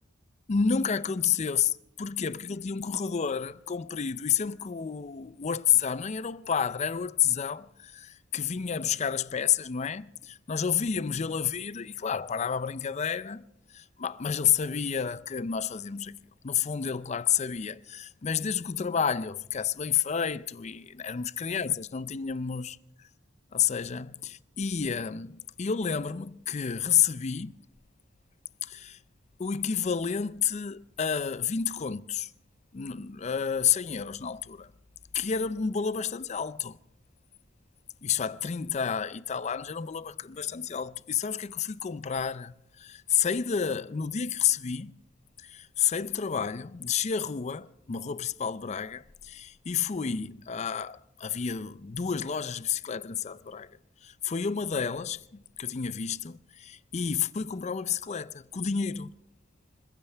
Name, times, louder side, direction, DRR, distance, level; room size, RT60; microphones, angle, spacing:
voice 1, 0.5-1.7 2.0-16.2 16.4-22.8 23.5-27.6 28.6-29.0 29.4-32.3 32.7-34.7 35.1-36.8 38.0-45.0 45.4-59.2, left 7 dB, 35° left, 0.5 m, -30 dB
26.0 x 15.5 x 3.4 m
head